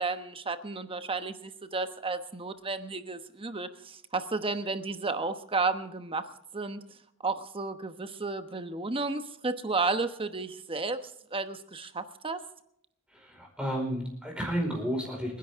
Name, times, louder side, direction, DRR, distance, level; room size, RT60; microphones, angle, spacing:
voice 1, 0.0-6.8 7.2-11.0 11.3-12.4, right 3 dB, 25° right, 9 dB, 1.1 m, -32 dB
voice 2, 13.1-15.4, equal, 5° right, 1 dB, 4.9 m, -32 dB
29.5 x 11.0 x 3.7 m, 0.75 s
head